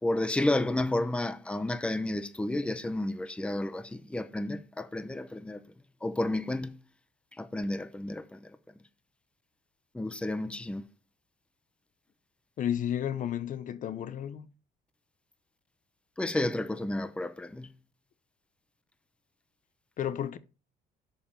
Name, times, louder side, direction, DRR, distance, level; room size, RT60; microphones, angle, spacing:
voice 1, 0.0-5.6 6.0-6.8 7.4-8.5 9.9-10.8 16.2-17.7, left 1 dB, 5° left, 0.8 m, -31 dB
voice 2, 12.6-14.5 20.0-20.4, left 10 dB, 50° left, 0.8 m, -32 dB
6.6 x 5.6 x 7.2 m
cardioid pair, 110°, 17 cm